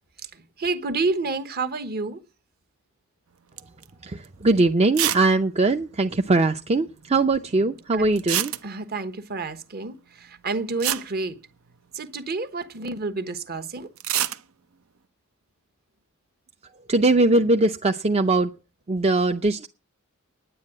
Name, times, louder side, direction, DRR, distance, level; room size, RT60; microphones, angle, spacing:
voice 1, 0.3-2.2 7.9-8.1 8.6-11.4 11.9-13.9, right 3 dB, 50° right, 1.2 m, -29 dB
sound 1, 3.6-3.9 4.2-4.3 4.9-5.3 5.5-5.6 5.8-5.9 8.2-9.0 10.4-10.5 10.8-12.0 14.0-14.4, right 11 dB, 75° right, 0.8 m, -26 dB
voice 2, 4.0-8.5 16.9-18.5 18.9-19.7, right 2 dB, 30° right, 0.6 m, -21 dB
9.9 x 9.3 x 8.7 m
head